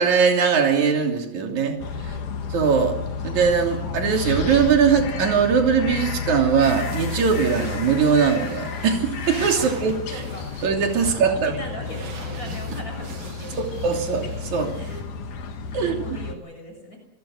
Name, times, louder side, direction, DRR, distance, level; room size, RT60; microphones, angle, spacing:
voice 1, 0.0-2.1 2.5-3.0 3.2-10.2 10.6-11.6 13.8-14.7 15.7-15.9, right 6 dB, 55° right, 3 dB, 4.2 m, -21 dB
sound 1, 1.8-16.4, left 5 dB, 65° left, 3.2 m, -32 dB
Bowed string instrument, 4.3-10.7, equal, 80° left, 5.2 m, -39 dB
sound 2, 6.6-15.0, right 4 dB, 80° right, 5.1 m, -42 dB
voice 2, 10.1-10.5 11.0-13.8 14.7-15.0 15.8-17.0, left 1 dB, 25° left, 3 dB, 7.3 m, -39 dB
27.0 x 22.0 x 6.6 m, 0.89 s
omnidirectional pair, 4.1 m